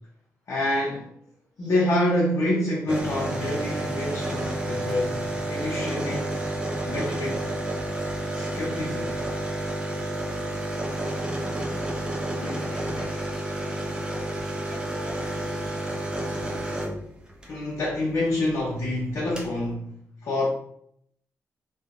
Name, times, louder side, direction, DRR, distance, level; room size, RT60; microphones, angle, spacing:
voice 1, 0.5-1.1 1.6-6.3 6.8-7.5 8.3-9.2 12.4-13.3 15.3-15.7 16.4-16.7 17.5-20.5, left 1 dB, 60° left, 0.7 m, -28 dB
sound 1, 2.9-17.5 18.8-18.9 19.1-19.5, right 1 dB, 15° right, 0.7 m, -30 dB
voice 2, 14.1-16.6, equal, ahead, 1.1 m, -46 dB
2.7 x 2.4 x 2.4 m
supercardioid pair, 60°, 6 cm